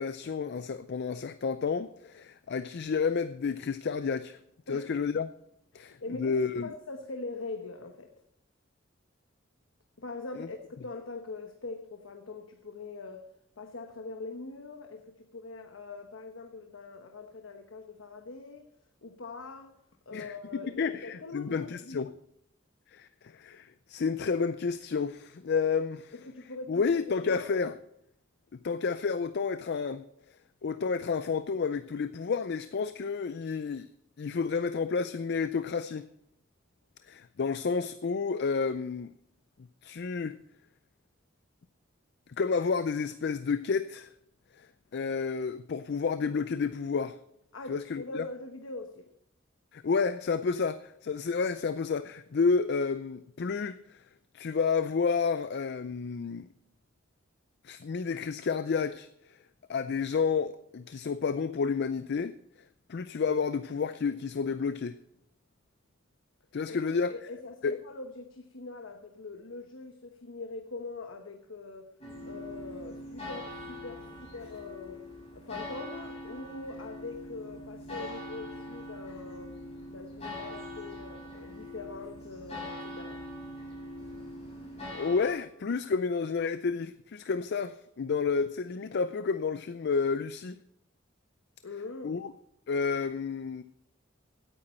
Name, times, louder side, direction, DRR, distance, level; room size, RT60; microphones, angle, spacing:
voice 1, 0.0-4.4 4.7-5.3 5.7-6.7 10.4-10.5 20.1-22.1 22.9-26.1 26.7-27.8 28.6-30.1 30.6-33.9 34.2-36.1 37.1-39.1 39.8-40.4 42.3-44.1 44.6-44.7 44.9-47.2 47.7-48.2 49.7-54.0 54.3-56.5 57.6-59.1 59.7-62.4 62.9-65.0 66.5-67.1 67.6-67.8 84.9-90.6 92.0-92.3 92.7-93.6, left 5 dB, 55° left, 0.4 m, -30 dB
voice 2, 5.7-8.1 10.0-13.3 13.6-18.7 19.0-19.7 20.1-22.0 26.1-27.7 47.5-49.1 66.7-71.9 72.2-75.0 75.3-79.5 79.9-83.2 91.6-92.2, left 3 dB, 90° left, 1.1 m, -43 dB
sound 1, 72.0-85.3, left 1 dB, 35° left, 6.4 m, -42 dB
16.5 x 9.1 x 4.4 m
head